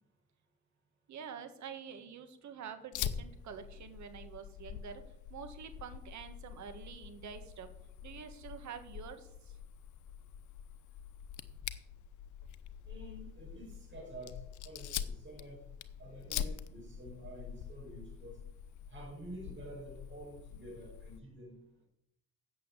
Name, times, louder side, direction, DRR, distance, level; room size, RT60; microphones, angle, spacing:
voice 1, 1.1-5.0 5.3-7.7 8.0-9.6, right 7 dB, 70° right, 9 dB, 1.6 m, -47 dB
Fire, 2.9-21.2, left 9 dB, 75° left, 0.8 m, -45 dB
voice 2, 12.9-15.7 16.0-18.4 18.9-21.9, right 1 dB, 40° right, -1 dB, 5.3 m, -49 dB
8.3 x 7.5 x 8.4 m, 0.78 s
cardioid pair, 90°, 30 cm